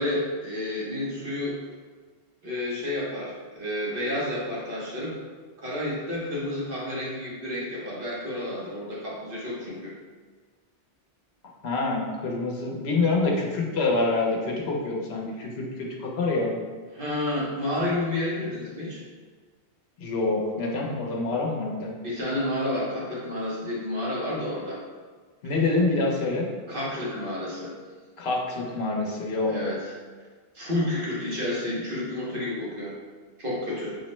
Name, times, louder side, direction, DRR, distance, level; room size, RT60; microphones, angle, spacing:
voice 1, 0.0-1.6 2.4-5.2 5.6-9.9 16.9-19.0 22.0-24.8 26.7-27.7 29.5-29.9 30.5-33.0 33.4-34.0, left 1 dB, 55° right, -6 dB, 1.0 m, -30 dB
voice 2, 11.6-16.5 20.0-21.9 25.4-26.5 28.2-29.6, left 3 dB, 70° left, -1 dB, 0.9 m, -26 dB
4.5 x 2.1 x 3.0 m, 1.5 s
omnidirectional pair, 1.1 m